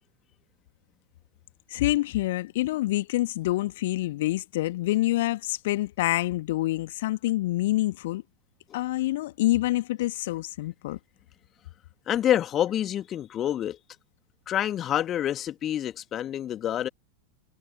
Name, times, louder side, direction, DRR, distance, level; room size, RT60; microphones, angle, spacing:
voice 1, 1.7-8.2 8.7-11.0, left 16 dB, 55° left, 1.8 m, -27 dB
voice 2, 12.1-13.8 14.5-16.9, left 11 dB, 30° left, 2.3 m, -27 dB
figure-of-eight pair, 90°, 0 cm